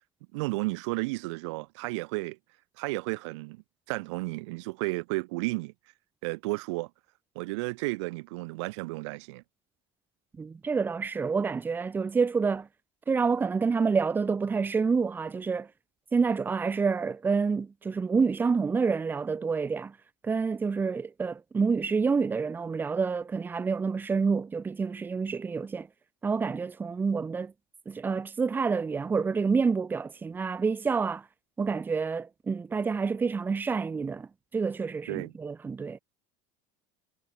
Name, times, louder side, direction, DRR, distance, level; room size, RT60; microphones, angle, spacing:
voice 1, 0.3-2.4 2.8-3.6 3.9-5.7 6.2-6.9 7.3-9.4 35.1-35.3, right 24 dB, 80° right, 3.4 m, -32 dB
voice 2, 10.4-12.7 13.1-15.7 16.1-20.0 20.2-25.9 26.2-27.5 27.8-31.2 31.6-34.3 34.5-36.0, right 5 dB, 15° right, 1.6 m, -28 dB
cardioid pair, 170°, 15 cm